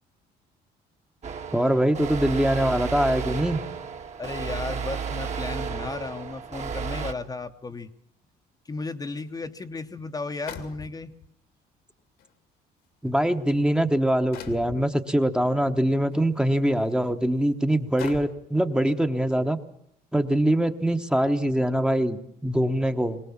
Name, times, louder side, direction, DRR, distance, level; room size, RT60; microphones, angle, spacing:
sound 1, 1.2-7.1, right 6 dB, 40° right, 1.6 m, -33 dB
voice 1, 1.5-3.6 13.0-19.6 20.1-23.2, right 1 dB, 5° right, 7 dB, 1.1 m, -23 dB
voice 2, 4.2-7.9 8.6-11.1, left 3 dB, 20° left, 6 dB, 1.0 m, -34 dB
sound 2, 9.4-9.5 10.5-11.3 12.2-12.3 13.1-13.3 14.3-14.8 16.1-16.3 16.9-17.0 18.0-18.5, left 7 dB, 80° left, 2.4 m, -40 dB
22.0 x 18.5 x 7.2 m, 0.71 s
cardioid pair, 110°, 17 cm